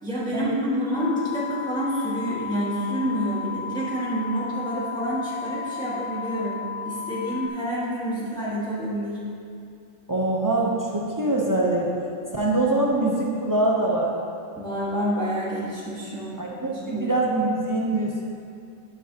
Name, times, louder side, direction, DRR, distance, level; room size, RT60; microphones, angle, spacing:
voice 1, 0.0-9.3 14.6-16.4 16.7-17.1, equal, 5° left, -9 dB, 1.5 m, -28 dB
sound 1, 0.9-7.5, left 7 dB, 80° left, 0.4 m, -34 dB
voice 2, 10.1-11.9 12.3-14.1 16.4-18.2, right 2 dB, 30° right, -3 dB, 0.3 m, -23 dB
11.0 x 6.1 x 2.8 m, 2.5 s
omnidirectional pair, 1.5 m